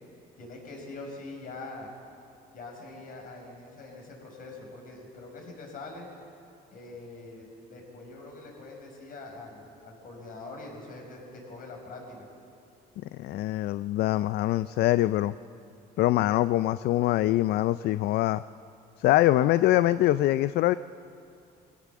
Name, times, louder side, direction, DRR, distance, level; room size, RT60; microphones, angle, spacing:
voice 1, 0.4-1.9 2.5-6.1 6.7-12.3 19.4-19.8, left 2 dB, 55° left, 0 dB, 5.9 m, -43 dB
voice 2, 13.1-15.3 16.0-18.4 19.0-20.7, left 15 dB, 70° left, 15 dB, 0.4 m, -24 dB
22.5 x 16.0 x 7.3 m, 2.6 s
cardioid pair, 110°, 17 cm